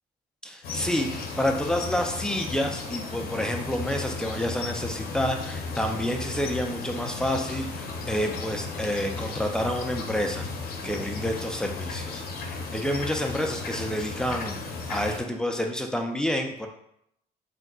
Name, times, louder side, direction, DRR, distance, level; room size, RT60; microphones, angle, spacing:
voice 1, 0.4-10.4 10.8-12.2 12.7-16.7, equal, 5° left, 3 dB, 0.3 m, -29 dB
sound 1, 0.6-15.2, left 3 dB, 65° left, 0.6 m, -35 dB
3.7 x 2.7 x 2.3 m, 0.76 s
cardioid pair, 110°, 17 cm